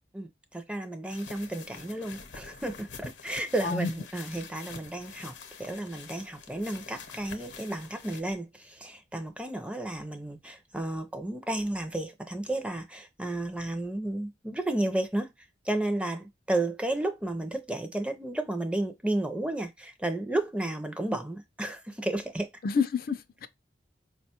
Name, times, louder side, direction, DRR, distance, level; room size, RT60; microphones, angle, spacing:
voice 1, 0.1-5.3 5.6-15.3 15.7-22.5, right 1 dB, 5° right, 0.4 m, -32 dB
sound 1, 1.1-8.2, left 5 dB, 80° left, 0.7 m, -46 dB
voice 2, 22.6-23.5, left 5 dB, 50° left, 0.4 m, -28 dB
4.7 x 2.2 x 2.8 m
head